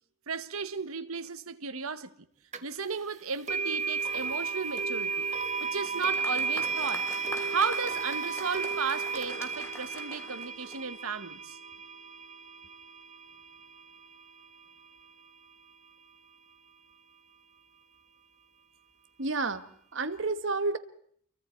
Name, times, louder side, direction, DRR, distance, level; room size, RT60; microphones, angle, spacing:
voice 1, 0.3-2.1 2.6-5.3 5.6-7.1 7.5-11.6, right 5 dB, 85° right, 1.3 m, -34 dB
sound 1, 2.5-2.6 3.5-14.5, right 5 dB, 35° right, 1.2 m, -33 dB
Applause, 5.6-11.2, left 2 dB, 10° left, 1.7 m, -45 dB
voice 2, 19.2-20.8, right 3 dB, 60° right, 1.4 m, -30 dB
28.5 x 23.0 x 4.5 m
head